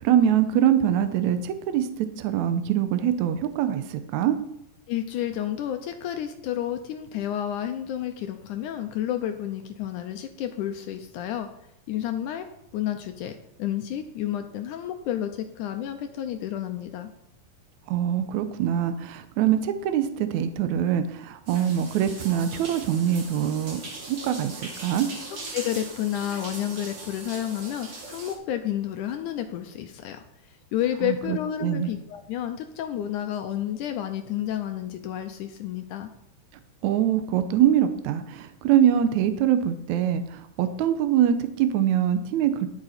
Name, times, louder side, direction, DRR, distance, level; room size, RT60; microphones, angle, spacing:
voice 1, 0.0-4.4 17.9-23.8 24.1-25.1 31.0-31.9 36.8-42.7, right 10 dB, 75° right, 10 dB, 1.8 m, -24 dB
voice 2, 4.9-11.5 11.9-12.5 12.7-17.1 25.5-36.1, left 11 dB, 80° left, 7 dB, 1.9 m, -30 dB
sound 1, 21.5-28.3, right 2 dB, 40° right, 2.4 m, -40 dB
10.5 x 9.0 x 4.2 m, 0.78 s
omnidirectional pair, 4.0 m